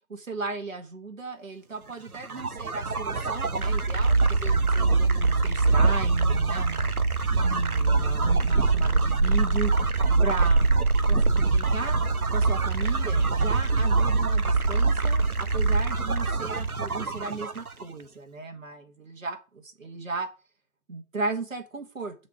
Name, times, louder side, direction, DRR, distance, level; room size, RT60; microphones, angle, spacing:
voice 1, 0.1-6.9 7.4-9.7 10.2-12.0 12.3-20.3 20.9-22.1, right 3 dB, 60° right, 5 dB, 2.1 m, -35 dB
sound 1, 2.1-17.8, right 3 dB, 80° right, 1.2 m, -23 dB
6.6 x 5.1 x 6.0 m, 0.32 s
figure-of-eight pair, 155°, 43 cm